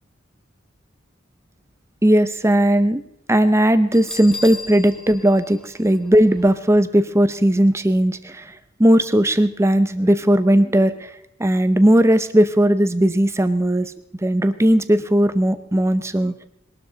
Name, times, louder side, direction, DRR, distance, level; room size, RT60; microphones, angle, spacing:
voice 1, 2.0-3.0 3.3-8.5 8.8-11.1 11.4-13.9 14.2-16.3, right 1 dB, 15° right, 12 dB, 0.7 m, -17 dB
Bell, 3.9-6.6, left 2 dB, 5° left, 1.3 m, -36 dB
21.0 x 12.0 x 4.0 m, 0.74 s
head